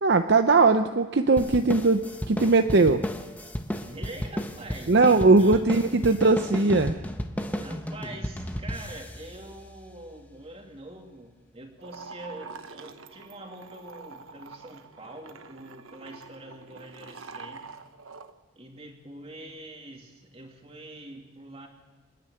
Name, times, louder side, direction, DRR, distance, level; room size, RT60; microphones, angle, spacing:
voice 1, 0.0-3.0 4.9-7.0, right 3 dB, 55° right, 8 dB, 0.7 m, -20 dB
sound 1, 1.4-10.2, equal, 10° left, 1.1 m, -34 dB
voice 2, 3.9-5.8 7.6-17.7 18.5-21.7, right 1 dB, 30° right, 2 dB, 2.6 m, -44 dB
sound 2, 11.8-18.3, right 4 dB, 90° right, 1.1 m, -45 dB
27.5 x 10.0 x 9.3 m, 1.2 s
head